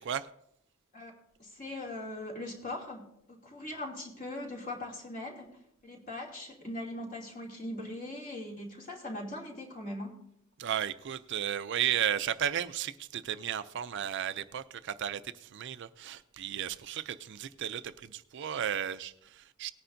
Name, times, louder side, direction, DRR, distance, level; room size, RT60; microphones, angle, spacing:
voice 1, 1.4-10.2, left 1 dB, 40° left, 2.6 m, -40 dB
voice 2, 10.6-19.7, right 9 dB, 55° right, 0.4 m, -34 dB
18.5 x 9.9 x 2.6 m
head